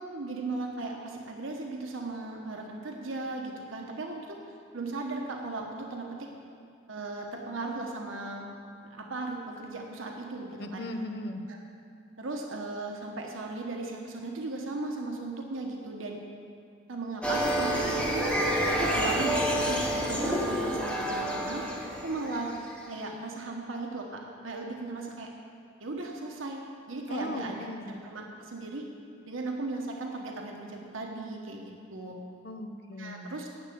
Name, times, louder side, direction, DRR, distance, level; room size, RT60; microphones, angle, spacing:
voice 1, 0.0-4.4 4.7-6.3 6.9-8.5 8.9-10.8 11.5-11.6 12.2-16.2 16.9-18.3 18.8-22.5 22.9-25.3 25.8-26.6 26.9-27.6 27.9-28.8 29.3-32.2 32.9-33.5, right 2 dB, 90° right, 1 dB, 1.1 m, -37 dB
voice 2, 10.6-11.4 27.1-27.9 32.4-33.4, left 1 dB, 55° left, 5 dB, 0.8 m, -38 dB
sound 1, 17.2-22.8, equal, 5° left, 1.1 m, -28 dB
10.0 x 6.8 x 8.4 m, 2.4 s
head